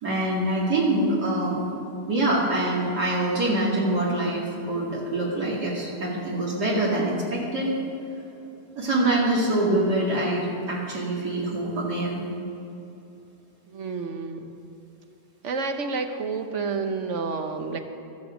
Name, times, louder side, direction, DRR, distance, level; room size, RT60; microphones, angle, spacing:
voice 1, 0.0-1.6 2.1-7.7 8.8-12.2, right 1 dB, 65° right, -5 dB, 2.8 m, -25 dB
voice 2, 13.7-14.6 15.4-17.8, right 4 dB, 50° right, 7 dB, 1.1 m, -29 dB
14.0 x 13.5 x 5.1 m, 3.0 s
omnidirectional pair, 1.9 m